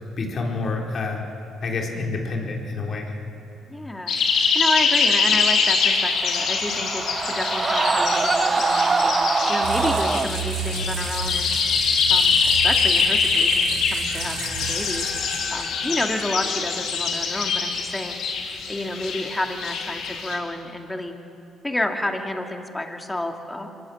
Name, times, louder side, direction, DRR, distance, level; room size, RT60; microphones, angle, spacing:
voice 1, 0.2-1.2 1.6-3.1, left 3 dB, 50° left, 0 dB, 4.4 m, -28 dB
voice 2, 3.7-4.2 4.5-8.9 9.5-11.5 12.1-15.0 15.5-18.2 18.7-21.1 21.6-23.7, left 1 dB, 15° left, 4 dB, 2.4 m, -30 dB
sound 1, 4.1-20.4, left 5 dB, 70° left, 3.4 m, -23 dB
Screaming, 5.8-10.3, right 4 dB, 30° right, 1.1 m, -23 dB
sound 2, 9.6-15.6, right 6 dB, 80° right, 2.5 m, -32 dB
24.5 x 19.0 x 7.4 m, 2.7 s
supercardioid pair, 75°, 0 cm